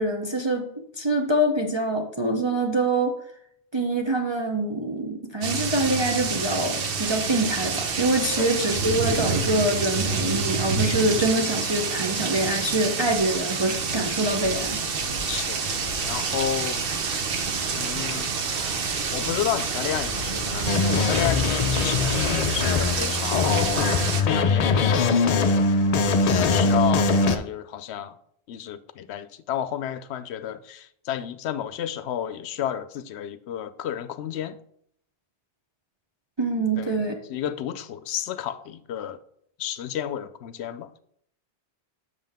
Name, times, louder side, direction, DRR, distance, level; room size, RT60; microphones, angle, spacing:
voice 1, 0.0-3.2 3.7-14.9 36.4-37.2, right 1 dB, 30° right, 0.6 m, -25 dB
sound 1, 5.4-24.2, right 5 dB, 60° right, 1.0 m, -28 dB
Wind, 13.1-22.8, left 2 dB, 85° right, 2.5 m, -43 dB
voice 2, 15.3-15.6 16.0-16.8 17.7-18.3 19.1-23.6 24.2-25.2 25.5-25.6 26.2-28.2 28.5-34.6 36.8-37.0 37.3-39.2 39.6-40.9, left 10 dB, 75° left, 0.8 m, -31 dB
sound 2, 20.7-27.4, left 4 dB, 50° left, 0.5 m, -22 dB
7.5 x 6.5 x 3.5 m
omnidirectional pair, 1.1 m